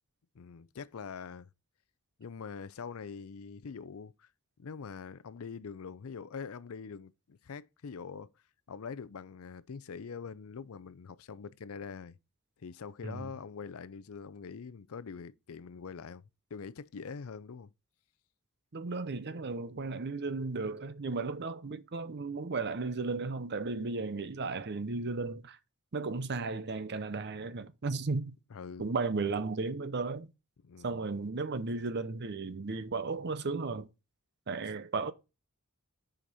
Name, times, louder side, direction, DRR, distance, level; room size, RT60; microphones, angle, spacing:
voice 1, 0.3-1.5 2.2-4.3 4.6-8.3 8.7-12.2 12.6-17.7 28.5-28.9 30.6-31.0, left 5 dB, 70° left, 0.5 m, -44 dB
voice 2, 18.7-25.6 25.9-28.4 28.8-30.3 30.8-33.9 34.5-35.1, right 3 dB, 50° right, 0.7 m, -35 dB
7.7 x 5.1 x 4.1 m
head